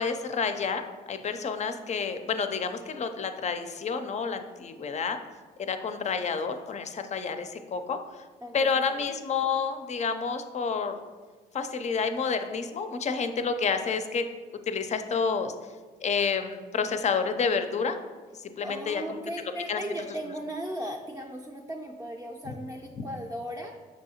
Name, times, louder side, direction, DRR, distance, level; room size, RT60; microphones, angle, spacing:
voice 1, 0.0-5.2 5.6-8.2 8.5-11.0 11.5-14.3 14.7-15.5 16.0-18.0 18.4-19.2 19.7-19.8, left 5 dB, 40° left, 8 dB, 0.5 m, -29 dB
voice 2, 8.4-9.1 18.6-23.8, equal, 15° right, 0 dB, 0.5 m, -37 dB
6.3 x 2.7 x 2.8 m, 1.4 s
supercardioid pair, 60°, 19 cm